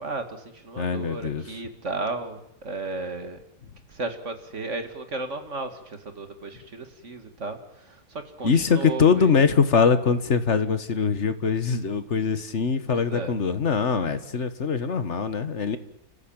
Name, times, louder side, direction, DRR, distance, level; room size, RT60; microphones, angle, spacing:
voice 1, 0.0-3.4 3.9-9.4 12.9-13.3, right 3 dB, 35° right, 8 dB, 2.3 m, -34 dB
voice 2, 0.8-1.4 8.4-15.8, left 5 dB, 40° left, 11 dB, 1.6 m, -22 dB
30.0 x 14.5 x 8.9 m, 0.75 s
omnidirectional pair, 2.2 m